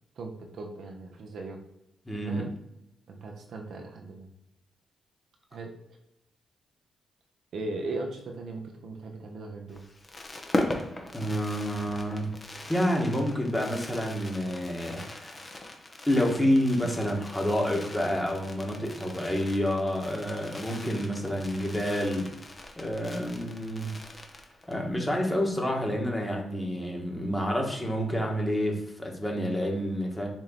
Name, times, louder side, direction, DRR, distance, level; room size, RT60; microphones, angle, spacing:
voice 1, 0.2-1.6 2.2-2.5 3.1-4.3 5.5-5.8 7.5-9.8, right 2 dB, 70° right, 2 dB, 0.8 m, -38 dB
voice 2, 2.0-2.5 11.1-15.4 16.1-22.3 22.8-23.9 24.7-30.3, equal, 10° left, 0 dB, 1.4 m, -28 dB
Fireworks, 9.7-24.9 25.2-25.3 25.5-25.7, left 1 dB, 30° left, 0.8 m, -39 dB
4.3 x 3.0 x 3.9 m, 0.86 s
cardioid pair, 75°, 0 cm